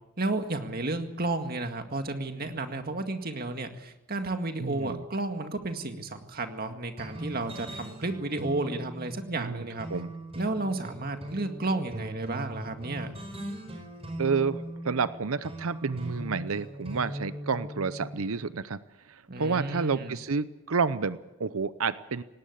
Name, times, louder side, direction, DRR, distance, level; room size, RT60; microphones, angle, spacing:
voice 1, 0.2-9.9 10.4-13.1 19.3-20.2, right 2 dB, 45° right, 6 dB, 2.0 m, -32 dB
voice 2, 4.6-5.0 9.4-10.1 14.2-18.8 19.1-22.2, right 5 dB, 75° right, 14 dB, 0.7 m, -30 dB
sound 1, 7.0-18.3, right 1 dB, 25° right, 4.9 m, -40 dB
18.5 x 18.5 x 8.4 m, 1.0 s
head